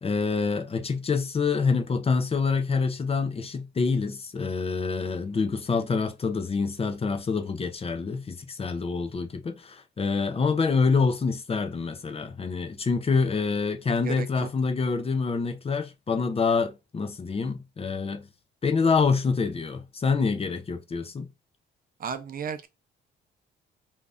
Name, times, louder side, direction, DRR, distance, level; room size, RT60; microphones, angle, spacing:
voice 1, 0.0-18.2 18.6-21.3, left 4 dB, 30° left, 0.6 m, -26 dB
voice 2, 22.0-22.7, right 6 dB, 45° right, 0.5 m, -33 dB
2.7 x 2.3 x 3.4 m
cardioid pair, 90°, 20 cm